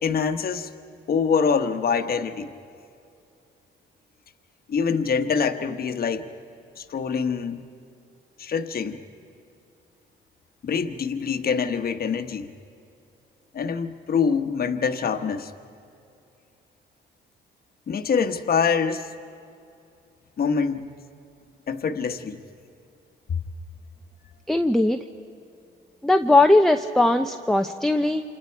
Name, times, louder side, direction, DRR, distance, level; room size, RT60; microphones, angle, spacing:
voice 1, 0.0-0.7 1.1-2.5 4.7-6.3 6.8-7.7 8.4-9.0 10.6-12.5 13.5-15.5 17.9-19.1 20.4-20.9 21.7-22.4 23.3-23.4, left 6 dB, 50° left, 7 dB, 1.2 m, -25 dB
voice 2, 24.5-25.0 26.0-28.2, left 2 dB, ahead, 5 dB, 0.7 m, -19 dB
28.5 x 26.5 x 4.7 m, 2.5 s
cardioid pair, 90°, 20 cm